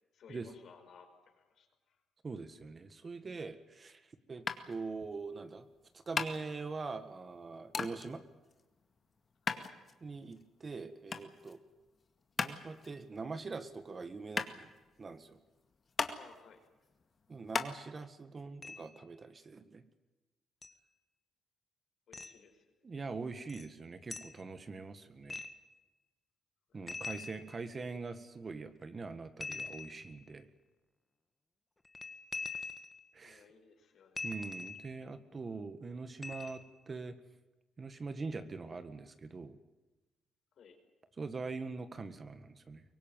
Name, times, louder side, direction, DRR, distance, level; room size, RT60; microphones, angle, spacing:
voice 1, 0.1-1.7 9.5-9.7 16.1-16.6 22.1-23.1 26.7-26.8 33.2-34.3 40.6-40.8, left 6 dB, 65° left, 5 dB, 5.3 m, -58 dB
voice 2, 2.2-4.0 4.3-5.7 5.9-8.2 10.0-11.6 12.4-14.7 15.0-15.4 17.3-19.8 22.8-25.4 26.7-30.5 33.1-33.4 34.2-37.1 37.8-39.6 41.2-42.8, right 4 dB, 35° right, 10 dB, 1.8 m, -43 dB
sound 1, 4.5-17.7, left 5 dB, 40° left, 2.0 m, -40 dB
sound 2, 18.6-19.0 20.6-20.7 22.1-22.4 23.5-23.7 24.1-24.4 25.3-25.7 26.9-27.9 29.4-30.2 31.8-33.1 34.2-35.0 36.2-36.8, left 3 dB, 20° left, 1.7 m, -43 dB
23.5 x 18.5 x 9.4 m, 1.1 s
cardioid pair, 90°, 0 cm